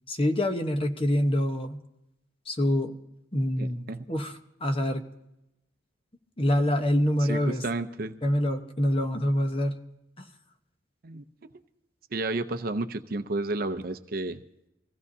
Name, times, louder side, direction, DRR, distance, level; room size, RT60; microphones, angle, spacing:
voice 1, 0.1-1.8 2.5-2.9 3.3-5.0 6.4-7.6 8.2-9.8, equal, 30° left, 6 dB, 1.0 m, -26 dB
voice 2, 3.6-4.0 7.2-8.2 11.0-11.2 12.1-14.4, right 2 dB, 50° right, 9 dB, 0.7 m, -31 dB
25.0 x 16.0 x 2.7 m, 0.88 s
head